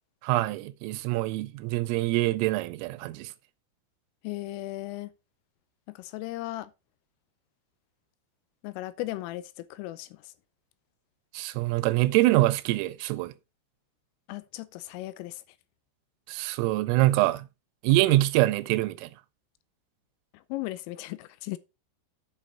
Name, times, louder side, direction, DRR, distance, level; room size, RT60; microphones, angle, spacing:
voice 1, 0.2-3.3 11.3-13.3 16.3-17.5 17.8-19.1, right 17 dB, 85° right, 3.2 m, -25 dB
voice 2, 4.2-5.1 5.9-6.7 8.6-10.3 14.3-15.4 20.5-21.6, left 17 dB, 85° left, 3.2 m, -36 dB
8.5 x 5.9 x 4.3 m
omnidirectional pair, 5.9 m